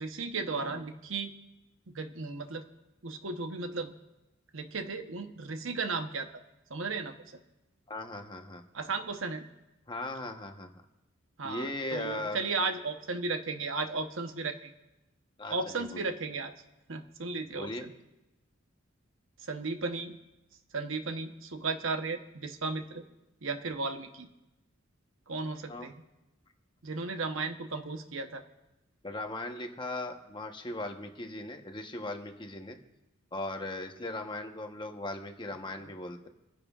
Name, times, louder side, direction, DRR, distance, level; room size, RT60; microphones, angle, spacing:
voice 1, 0.0-1.3 1.9-2.6 3.0-3.9 4.5-6.4 6.7-7.4 8.7-9.4 11.4-14.7 15.5-16.5 16.9-17.9 19.4-20.2 20.7-23.0 23.4-24.3 25.3-26.0 26.8-28.4, right 3 dB, 70° right, 7 dB, 1.0 m, -35 dB
voice 2, 7.9-8.6 9.9-10.7 11.4-12.4 15.4-16.0 17.5-17.9 25.7-25.9 29.0-32.8 33.3-36.3, left 2 dB, 25° left, 4 dB, 1.0 m, -38 dB
28.5 x 10.5 x 2.4 m, 0.99 s
head